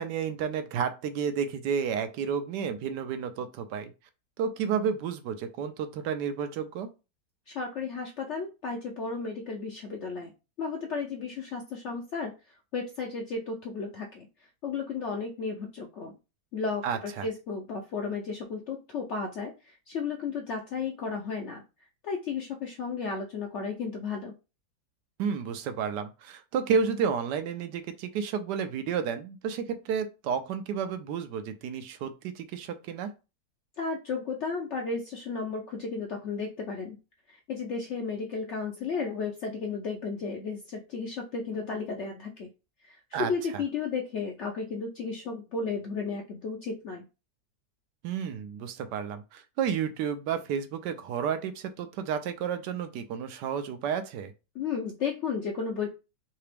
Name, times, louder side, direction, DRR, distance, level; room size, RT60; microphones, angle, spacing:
voice 1, 0.0-3.9 4.4-6.9 16.8-17.3 25.2-33.1 43.1-43.6 48.0-54.3, right 7 dB, 80° right, 1.2 m, -31 dB
voice 2, 7.5-10.3 10.6-12.3 12.7-14.3 14.6-16.1 16.5-21.6 22.0-24.3 33.8-37.0 37.3-42.5 42.8-47.0 54.5-55.9, left 5 dB, 70° left, 0.7 m, -33 dB
3.4 x 2.8 x 3.3 m
omnidirectional pair, 1.8 m